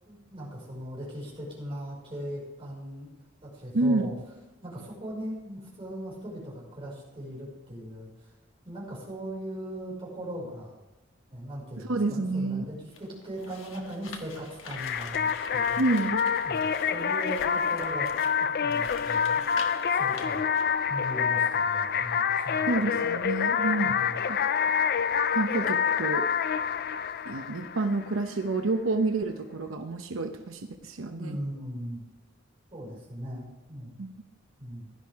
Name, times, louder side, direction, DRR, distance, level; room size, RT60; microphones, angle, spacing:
voice 1, 0.1-3.1 3.4-4.2 4.6-8.3 8.6-10.8 11.3-15.8 16.4-18.1 18.4-19.4 19.9-20.5 20.9-22.7 23.8-24.2 31.1-32.0 32.7-34.0 34.6-34.9, right 1 dB, 30° right, -4 dB, 5.6 m, -39 dB
voice 2, 3.7-4.1 11.8-12.6 15.8-16.3 22.7-24.0 24.3-24.6 25.3-26.3 27.2-31.4 34.0-34.1, right 2 dB, 90° right, 6 dB, 0.8 m, -29 dB
sound 1, 12.8-20.6, left 5 dB, 75° left, 1.4 m, -45 dB
sound 2, 14.8-28.2, left 7 dB, 50° left, 0.4 m, -27 dB
16.0 x 11.5 x 3.6 m, 1.1 s
head